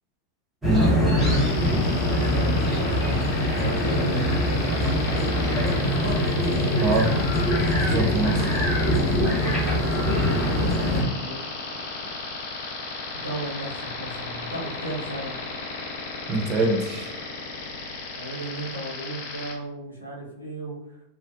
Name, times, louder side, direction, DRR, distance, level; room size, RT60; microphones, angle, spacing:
sound 1, 0.6-11.0, left 1 dB, 10° right, 0.9 m, -23 dB
voice 1, 0.7-6.3 7.6-8.8 9.2-12.1 13.2-15.4 18.1-21.0, right 1 dB, 85° right, -4 dB, 0.6 m, -36 dB
sound 2, 1.2-19.5, left 3 dB, 55° left, 0.4 m, -35 dB
voice 2, 6.8-7.1 7.9-8.4 16.3-17.3, right 2 dB, 30° right, 2 dB, 0.5 m, -24 dB
2.4 x 2.1 x 2.4 m, 0.82 s
figure-of-eight pair, 90°, 0 cm